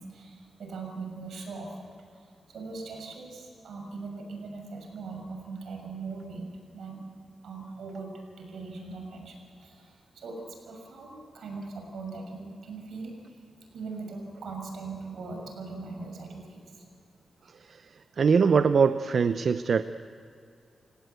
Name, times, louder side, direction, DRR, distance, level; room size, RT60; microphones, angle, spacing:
voice 1, 0.0-7.0 7.4-13.4 13.7-16.9, right 3 dB, 80° right, 2 dB, 6.3 m, -40 dB
voice 2, 17.5-19.8, right 5 dB, 60° right, 11 dB, 0.6 m, -23 dB
28.5 x 17.5 x 8.2 m, 2.5 s
cardioid pair, 85°, 0 cm